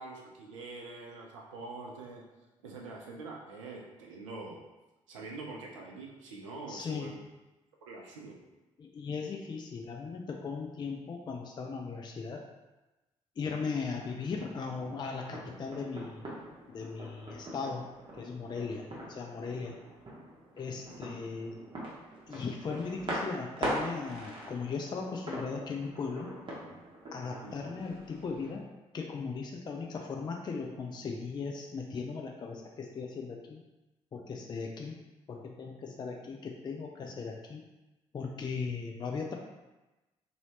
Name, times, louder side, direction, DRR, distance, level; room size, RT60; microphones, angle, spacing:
voice 1, 0.0-2.2 2.6-4.6 5.1-7.2 7.9-8.4 20.9-21.0 27.4-27.5, right 3 dB, 80° right, -1 dB, 0.4 m, -44 dB
voice 2, 6.7-7.1 8.8-12.5 13.4-16.2 16.7-17.9 18.1-19.8 20.6-21.6 22.3-26.3 27.1-28.7 28.9-33.6 34.1-34.9 35.3-37.6 38.1-39.3, left 4 dB, 25° left, 2 dB, 0.4 m, -38 dB
sound 1, 13.7-28.6, right 1 dB, 30° right, 0.9 m, -42 dB
2.7 x 2.7 x 3.0 m, 1.1 s
figure-of-eight pair, 40°, 16 cm